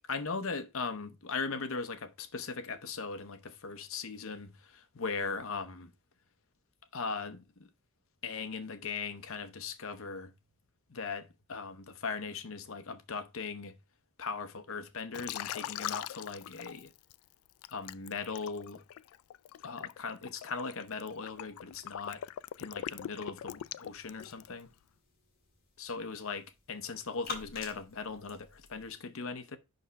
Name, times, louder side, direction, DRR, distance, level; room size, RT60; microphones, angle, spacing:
voice 1, 0.0-5.9 6.9-7.4 8.2-10.3 10.9-13.8 14.2-16.9 17.7-18.8 19.6-22.2 22.6-24.7 25.8-29.6, left 4 dB, 70° left, 0.8 m, -39 dB
Liquid, 15.1-17.1 17.6-24.6, left 11 dB, 85° left, 0.3 m, -41 dB
sound 1, 23.5-28.9, left 3 dB, 45° left, 1.9 m, -49 dB
5.5 x 5.3 x 3.9 m
head